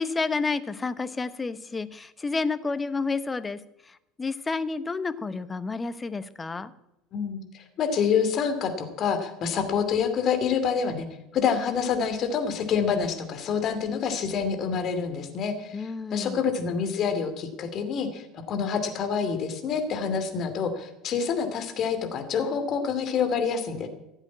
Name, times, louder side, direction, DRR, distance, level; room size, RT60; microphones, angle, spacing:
voice 1, 0.0-3.6 3.8-6.7 15.7-16.4, left 4 dB, 20° left, 13 dB, 1.0 m, -30 dB
voice 2, 7.1-11.1 11.3-23.9, left 6 dB, 40° left, 7 dB, 2.6 m, -27 dB
15.5 x 8.1 x 8.5 m, 0.87 s
figure-of-eight pair, 70°, 0 cm